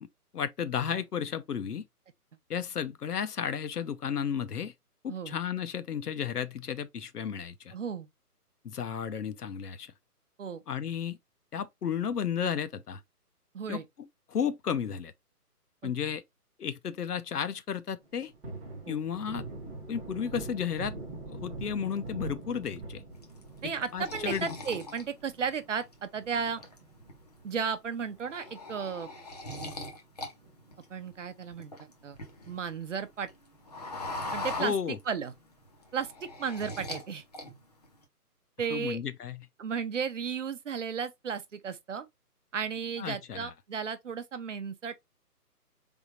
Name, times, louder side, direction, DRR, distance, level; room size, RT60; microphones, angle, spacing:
voice 1, 0.3-1.8 2.5-4.7 5.0-7.7 8.6-9.9 10.7-11.2 11.5-13.0 13.7-13.8 14.3-15.1 15.8-16.2 16.6-18.3 18.9-19.4 19.9-20.9 21.3-23.0 23.6-24.5 34.6-35.0 38.7-39.5 43.0-43.5, left 7 dB, 75° left, 0.8 m, -33 dB
voice 2, 7.7-8.1 10.4-10.6 13.5-13.8 15.8-15.9 18.8-19.0 23.6-26.6 27.4-29.1 30.9-32.2 32.5-33.3 34.3-35.3 35.9-37.2 38.6-39.0 39.6-42.1 42.5-45.0, right 6 dB, 50° right, 0.7 m, -34 dB
Thunder, 18.0-28.7 29.1-29.2 29.6-31.1 31.4-31.5 31.9-32.7 33.1-33.2 33.5-33.6 36.0-36.5, right 3 dB, 5° right, 0.9 m, -44 dB
sound 1, 23.2-25.9 26.4-27.1 27.5-27.7 28.0-30.3 30.6-32.7 33.0-35.3 35.7-37.1 37.3-37.9, left 2 dB, 25° left, 0.6 m, -40 dB
3.8 x 3.5 x 2.9 m
figure-of-eight pair, 150°, 47 cm